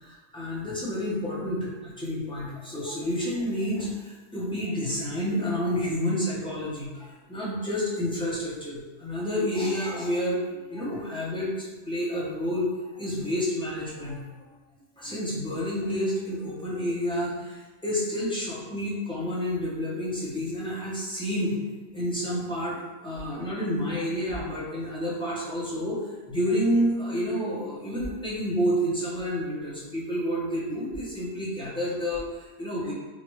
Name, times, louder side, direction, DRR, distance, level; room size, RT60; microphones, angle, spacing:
voice 1, 0.0-14.2 15.0-21.6 21.9-32.9, equal, 5° left, -8 dB, 0.6 m, -29 dB
3.0 x 2.4 x 3.1 m, 1.2 s
omnidirectional pair, 1.2 m